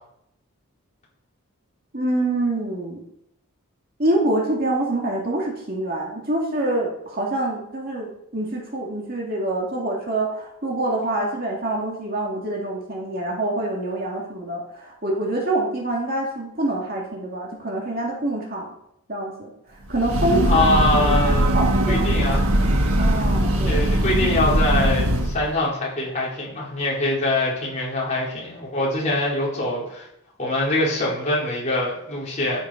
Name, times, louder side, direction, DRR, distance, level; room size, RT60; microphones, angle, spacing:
voice 1, 1.9-3.0 4.0-18.7 19.1-19.5 19.9-20.7 20.9-22.2 23.0-23.8, right 1 dB, 45° right, -2 dB, 2.4 m, -26 dB
Breathing / Train, 19.9-25.4, right 1 dB, 90° right, 1.5 m, -20 dB
voice 2, 20.5-21.6 21.9-22.5 23.6-30.1 30.4-32.6, left 2 dB, 35° left, -5 dB, 4.4 m, -23 dB
13.5 x 7.2 x 5.2 m, 0.77 s
head